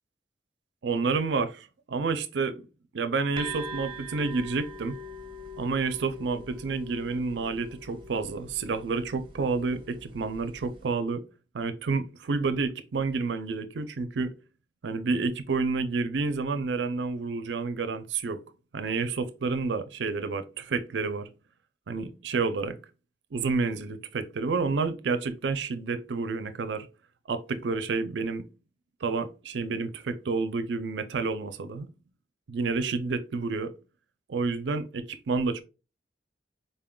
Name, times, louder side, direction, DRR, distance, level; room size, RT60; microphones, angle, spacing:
voice 1, 0.8-2.5 2.9-5.0 5.6-11.2 11.5-14.3 14.8-18.4 18.7-21.3 21.9-22.8 23.3-26.9 27.3-28.5 29.0-31.9 32.5-33.7 34.3-35.6, right 4 dB, 75° right, 0.5 m, -29 dB
sound 1, 3.4-10.9, equal, 30° right, 0.6 m, -43 dB
3.9 x 3.7 x 2.2 m
head